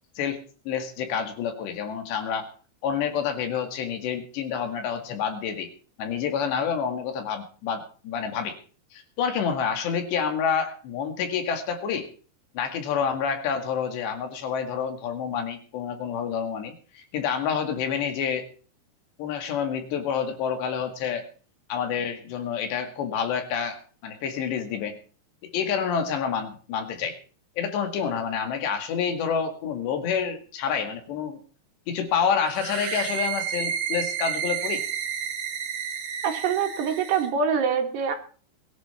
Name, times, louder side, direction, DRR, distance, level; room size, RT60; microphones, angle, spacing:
voice 1, 0.7-2.5 2.8-5.7 6.0-8.6 8.9-12.1 12.5-18.5 19.2-21.3 21.7-25.0 25.5-27.2 27.6-31.4 31.9-34.8, left 7 dB, 85° left, 6 dB, 4.4 m, -28 dB
sound 1, 32.5-37.3, right 8 dB, 60° right, 3.2 m, -31 dB
voice 2, 36.2-38.2, right 6 dB, 75° right, 4 dB, 4.1 m, -25 dB
21.5 x 10.5 x 4.4 m, 0.40 s
omnidirectional pair, 4.9 m